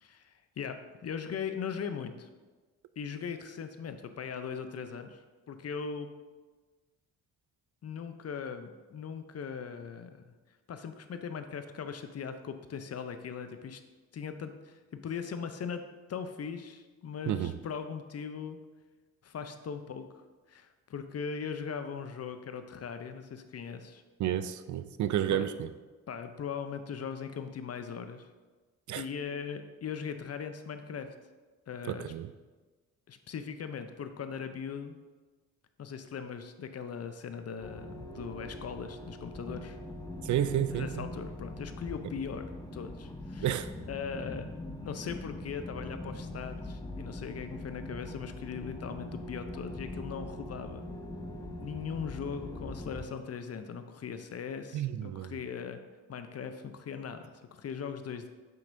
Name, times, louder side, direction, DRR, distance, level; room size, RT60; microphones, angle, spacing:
voice 1, 0.0-2.3 3.0-6.1 7.8-10.3 10.7-13.8 14.1-15.8 16.1-18.6 19.2-20.1 20.5-24.0 25.3-25.5 26.1-28.3 28.9-31.1 31.7-32.1 33.1-35.0 35.8-39.8 40.7-42.5 42.7-43.5 43.9-44.5 44.8-50.9 51.6-55.8 56.1-58.3, left 6 dB, 45° left, 0.7 m, -39 dB
voice 2, 24.2-25.7 28.9-29.0 31.9-32.3 40.2-41.1 43.4-43.7 54.7-55.3, right 11 dB, 60° right, 0.5 m, -31 dB
sound 1, 37.6-53.1, left 1 dB, 10° left, 0.7 m, -42 dB
7.5 x 5.9 x 2.6 m
supercardioid pair, 55°, 35 cm